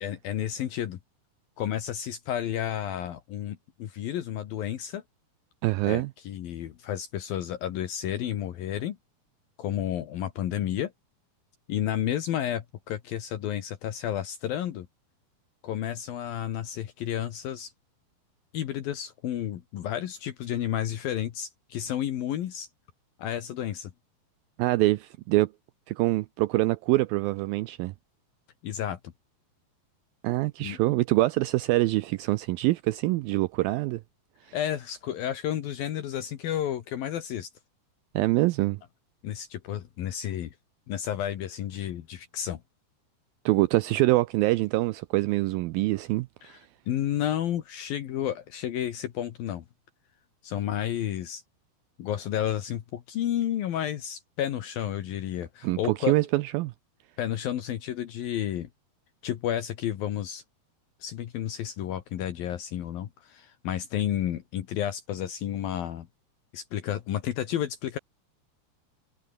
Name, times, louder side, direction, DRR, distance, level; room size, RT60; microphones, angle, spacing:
voice 1, 0.0-1.0 1.6-5.0 5.8-9.0 9.6-10.9 11.7-14.9 15.6-17.7 18.5-22.7 23.2-23.9 28.6-29.0 30.6-30.8 34.5-37.5 39.2-40.5 40.9-42.6 46.4-46.6 46.9-49.6 50.4-51.4 52.0-56.1 57.2-58.7 59.2-60.4 61.0-66.1 66.5-68.0, left 11 dB, 65° left, 3.2 m, -31 dB
voice 2, 5.6-6.1 24.6-25.5 25.9-27.9 30.2-34.0 34.5-34.6 38.2-38.8 43.5-46.6 55.6-56.7, right 19 dB, 80° right, 2.1 m, -25 dB
omnidirectional pair, 4.7 m